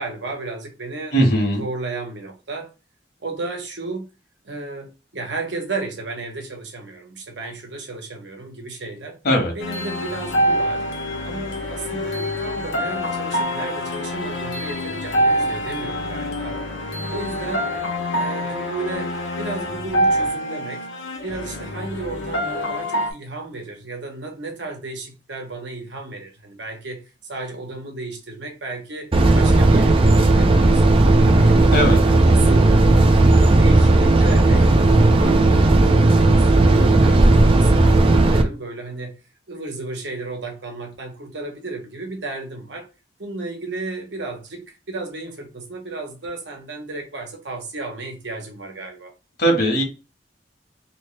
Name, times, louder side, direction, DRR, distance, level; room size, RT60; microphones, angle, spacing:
voice 1, 0.0-1.1 1.6-2.7 3.2-4.1 4.4-9.2 9.5-10.8 11.2-16.6 17.1-17.7 18.1-19.1 19.4-20.8 21.2-31.6 32.0-33.1 33.6-39.1 39.5-42.8 43.2-49.1, right 3 dB, 70° right, 1.1 m, -33 dB
voice 2, 1.1-1.6 9.2-9.5 31.7-32.0 49.4-49.8, equal, 60° left, 1.3 m, -18 dB
sound 1, 9.6-23.1, equal, 80° left, 0.9 m, -25 dB
sound 2, 29.1-38.4, right 2 dB, 30° right, 0.4 m, -14 dB
3.2 x 3.1 x 3.2 m
head